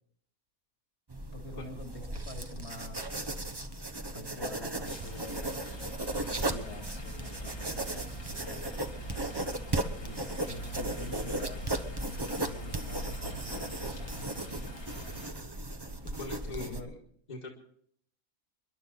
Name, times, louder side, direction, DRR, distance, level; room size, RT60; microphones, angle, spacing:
sound 1, 1.1-16.8, right 2 dB, 20° right, 0.9 m, -36 dB
voice 1, 1.3-3.2 4.1-5.7 6.1-8.9 10.0-11.6 12.0-14.7 16.4-16.9, left 2 dB, 50° left, 3 dB, 2.8 m, -47 dB
sound 2, 4.8-15.3, equal, 85° left, 3.5 m, -43 dB
voice 2, 16.1-17.0 17.3-17.5, left 2 dB, 30° left, -1 dB, 1.9 m, -41 dB
29.0 x 11.5 x 4.1 m, 0.66 s
omnidirectional pair, 1.5 m